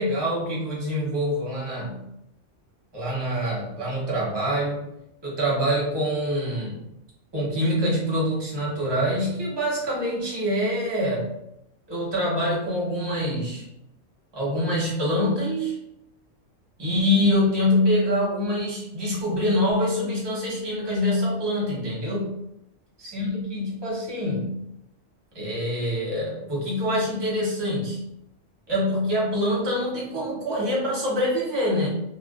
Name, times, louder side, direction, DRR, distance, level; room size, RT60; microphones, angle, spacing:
voice 1, 0.0-2.0 2.9-4.9 5.2-6.8 7.3-11.3 11.9-13.6 14.3-15.7 16.8-22.3 23.0-24.6 25.3-28.0 28.7-31.9, equal, 25° right, -5 dB, 0.7 m, -25 dB
2.4 x 2.2 x 2.3 m, 0.82 s
omnidirectional pair, 1.3 m